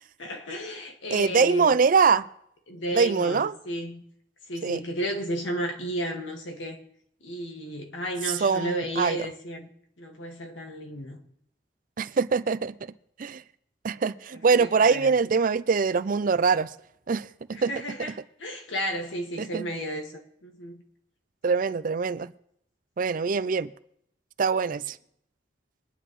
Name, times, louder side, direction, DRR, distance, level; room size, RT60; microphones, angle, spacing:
voice 1, 0.2-1.7 2.7-4.0 4.5-6.8 7.2-9.7 10.0-11.2 14.6-15.1 17.5-20.8, equal, 85° left, 1.9 m, -33 dB
voice 2, 1.1-2.3 2.9-3.5 4.6-4.8 8.2-9.3 12.0-12.7 13.2-13.4 13.8-16.7 17.1-17.7 19.4-19.7 21.4-22.3 23.0-23.7 24.4-25.0, right 5 dB, 45° right, 0.4 m, -23 dB
23.0 x 10.0 x 3.1 m
head